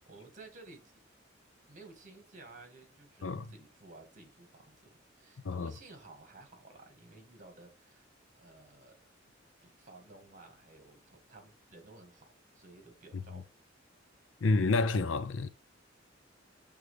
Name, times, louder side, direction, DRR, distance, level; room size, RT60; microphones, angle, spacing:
voice 1, 0.1-0.9 1.7-8.1 8.3-9.1 9.6-12.3 12.5-13.5, right 3 dB, 40° right, 1.9 m, -54 dB
voice 2, 14.4-15.5, left 3 dB, 70° left, 0.5 m, -29 dB
7.9 x 3.7 x 3.3 m
head